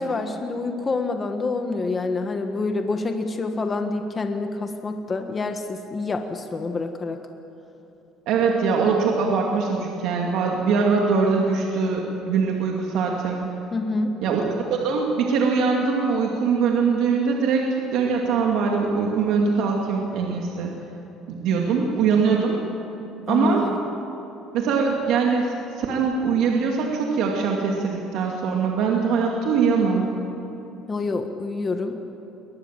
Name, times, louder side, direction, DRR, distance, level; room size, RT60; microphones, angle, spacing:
voice 1, 0.0-7.2 13.7-14.1 23.3-23.8 30.9-32.0, left 3 dB, 25° left, 5 dB, 1.4 m, -27 dB
voice 2, 8.3-13.5 14.2-14.4 14.7-17.6 17.9-20.7 21.3-22.6 23.3-23.7 24.5-30.1, right 5 dB, 70° right, 0 dB, 2.4 m, -22 dB
22.5 x 19.0 x 7.5 m, 3.0 s
cardioid pair, 140°, 0 cm